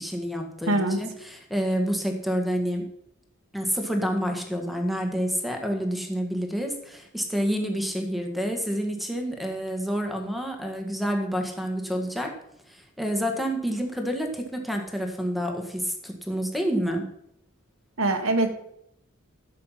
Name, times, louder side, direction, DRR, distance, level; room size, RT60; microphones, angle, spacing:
voice 1, 0.0-2.8 3.5-12.3 12.7-17.0, equal, ahead, 3 dB, 1.7 m, -28 dB
voice 2, 0.7-1.0 18.0-18.5, right 2 dB, 75° right, 5 dB, 1.6 m, -23 dB
12.5 x 6.7 x 5.8 m, 0.73 s
head